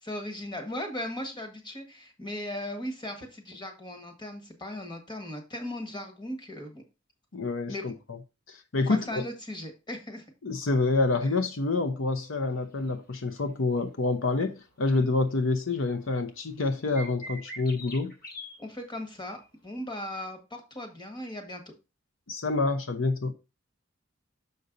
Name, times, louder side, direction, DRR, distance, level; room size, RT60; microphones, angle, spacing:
voice 1, 0.0-6.8 7.7-7.8 8.9-10.2 18.6-21.7, left 1 dB, 25° left, 1.6 m, -37 dB
voice 2, 7.3-8.2 8.5-9.3 10.4-18.1 22.3-23.3, left 3 dB, 75° left, 0.8 m, -27 dB
sound 1, 13.1-13.3 13.8-13.9 14.9-15.1 15.4-15.5 15.7-16.1 17.0-18.6 19.3-19.5, equal, 50° left, 2.1 m, -42 dB
6.8 x 5.4 x 3.9 m
head